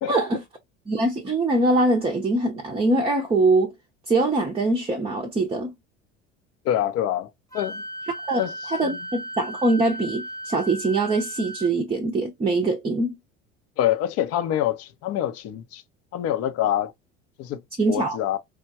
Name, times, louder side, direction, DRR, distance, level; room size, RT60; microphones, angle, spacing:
voice 1, 0.1-0.4 0.9-3.7 4.1-5.7 8.3-13.2 17.8-18.2, right 2 dB, 15° right, 0.6 m, -23 dB
voice 2, 6.6-7.8 8.3-9.0 13.8-15.8 16.1-16.9 17.4-17.6 17.9-18.4, left 11 dB, 45° left, 0.6 m, -26 dB
Wind instrument woodwind instrument, 7.5-11.7, right 1 dB, 10° left, 1.0 m, -36 dB
4.7 x 2.1 x 2.7 m
figure-of-eight pair, 65°, 36 cm